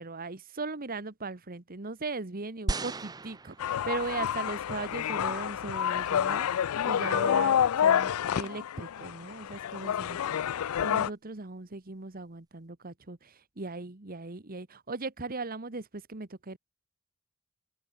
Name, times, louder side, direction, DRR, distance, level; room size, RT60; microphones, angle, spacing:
voice 1, 0.0-10.2 10.6-16.6, right 3 dB, 45° right, 1.4 m, -38 dB
sound 1, 2.7-4.2 4.9-5.0, right 2 dB, 20° right, 0.6 m, -35 dB
sound 2, 3.6-11.1, left 9 dB, 90° left, 0.4 m, -28 dB
head